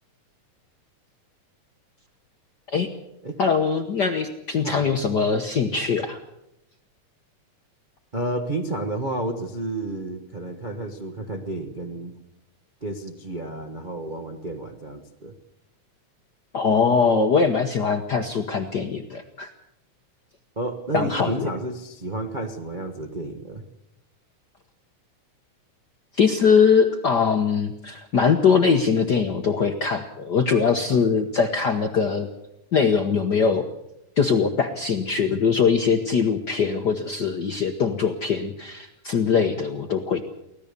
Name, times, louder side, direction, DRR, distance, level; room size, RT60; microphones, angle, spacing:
voice 1, 3.4-6.2 16.5-19.5 20.9-21.5 26.1-32.3 32.7-33.6 34.2-40.2, left 5 dB, 60° left, 5 dB, 1.1 m, -22 dB
voice 2, 4.5-4.9 8.1-12.1 12.8-15.3 20.6-23.6, right 2 dB, 60° right, 4 dB, 0.5 m, -31 dB
24.5 x 17.0 x 6.8 m, 0.85 s
omnidirectional pair, 3.4 m